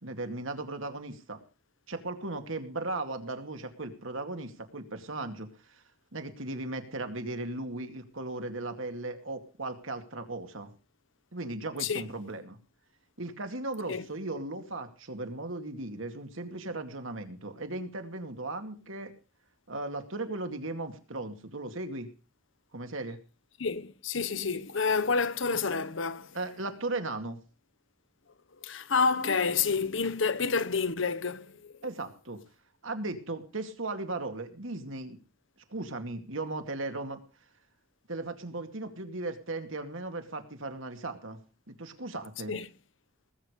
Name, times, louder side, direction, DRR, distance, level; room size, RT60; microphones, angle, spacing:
voice 1, 0.0-1.4 1.9-5.8 6.1-10.7 11.3-12.6 13.2-19.1 19.7-22.1 22.7-23.2 26.3-27.4 31.8-32.4 32.8-35.2 35.7-37.2 38.1-41.4 41.7-42.5, right 2 dB, 75° right, 2.3 m, -37 dB
voice 2, 23.6-26.4 28.6-31.7 42.5-42.7, left 5 dB, 70° left, 1.0 m, -29 dB
19.5 x 8.6 x 5.1 m
head